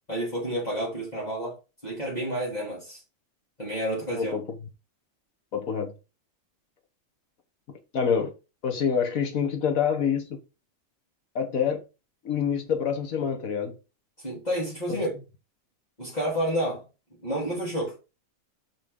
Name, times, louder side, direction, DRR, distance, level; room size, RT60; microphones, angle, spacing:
voice 1, 0.1-1.5 1.8-3.0 3.6-4.3 14.2-15.1 16.0-16.8 17.2-17.9, right 1 dB, 30° left, 3.5 m, -29 dB
voice 2, 5.5-5.9 7.7-8.3 8.6-10.4 11.3-11.8 12.2-13.7 14.9-15.0, left 7 dB, 80° left, 1.7 m, -26 dB
6.1 x 6.1 x 3.7 m
omnidirectional pair, 1.4 m